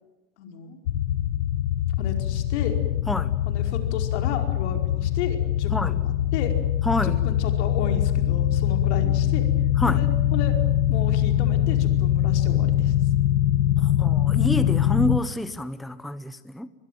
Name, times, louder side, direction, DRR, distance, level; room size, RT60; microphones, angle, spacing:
voice 1, 0.4-0.8 2.0-2.8 3.4-6.5 7.0-9.5 9.9-10.5 10.9-12.9, left 7 dB, 70° left, 5 dB, 5.0 m, -33 dB
sound 1, 0.9-15.2, left 12 dB, 90° left, 1.2 m, -23 dB
voice 2, 6.8-7.2 9.8-10.0 13.8-16.7, left 1 dB, ahead, 13 dB, 0.8 m, -28 dB
24.5 x 21.0 x 9.4 m, 1.1 s
supercardioid pair, 120°, 35 cm